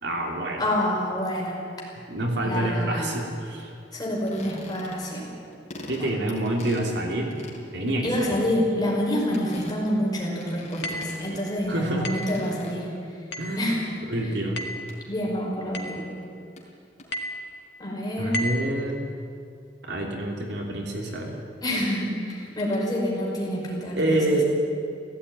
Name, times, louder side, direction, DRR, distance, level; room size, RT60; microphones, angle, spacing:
voice 1, 0.0-0.6 2.1-3.7 5.9-7.3 7.7-8.3 11.7-12.1 13.4-13.6 14.1-14.7 18.2-19.0 19.9-21.4 24.0-24.4, right 1 dB, 70° right, 0 dB, 3.3 m, -27 dB
voice 2, 0.6-1.6 2.4-3.1 3.9-5.3 6.0-6.1 8.0-12.9 13.6-13.8 14.2-14.3 15.1-16.1 17.8-18.4 21.6-24.4, equal, 20° left, -3 dB, 5.4 m, -27 dB
sound 1, 4.1-5.2 5.5-11.9 12.1-13.2 13.5-14.0 14.9-15.0 16.2-16.3 16.6-16.7 17.0-17.1 22.3-22.8, left 1 dB, 40° left, 4.1 m, -44 dB
sound 2, 10.8-11.2 12.0-12.4 13.3-13.6 14.6-14.9 15.7-16.0 17.1-17.4 18.3-18.7, left 1 dB, 70° left, 2.0 m, -32 dB
16.5 x 16.0 x 9.8 m, 2.5 s
head